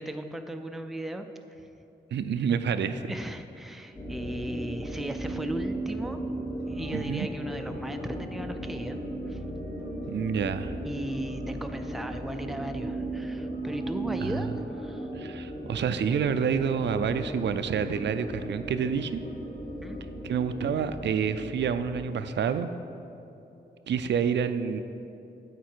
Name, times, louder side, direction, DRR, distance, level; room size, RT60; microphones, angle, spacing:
voice 1, 0.0-1.7 3.1-6.2 6.7-9.0 9.3-9.4 10.8-15.1 19.8-20.0, right 1 dB, ahead, 6 dB, 0.4 m, -37 dB
voice 2, 2.1-3.1 6.9-7.3 10.1-10.7 14.2-14.5 15.1-19.2 20.2-22.7 23.9-24.8, right 7 dB, 85° right, 10 dB, 0.4 m, -28 dB
sound 1, 4.0-22.0, right 1 dB, 15° left, 1.2 m, -36 dB
sound 2, 6.4-20.1, equal, 75° left, 2.0 m, -48 dB
9.4 x 8.0 x 4.5 m, 2.9 s
wide cardioid pair, 140°, 18 cm